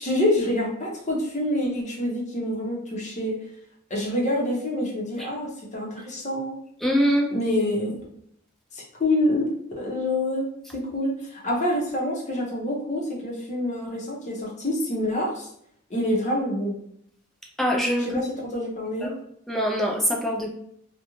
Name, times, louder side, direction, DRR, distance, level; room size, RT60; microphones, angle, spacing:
voice 1, 0.0-3.4 3.9-6.6 7.3-8.0 8.7-9.5 9.8-10.5 10.7-15.5 15.9-16.8 18.0-19.1, left 1 dB, 35° left, -2 dB, 0.7 m, -26 dB
voice 2, 6.8-7.3 17.6-18.2 19.0-19.1 19.5-20.5, equal, ahead, -1 dB, 0.4 m, -23 dB
2.4 x 2.1 x 3.0 m, 0.70 s
head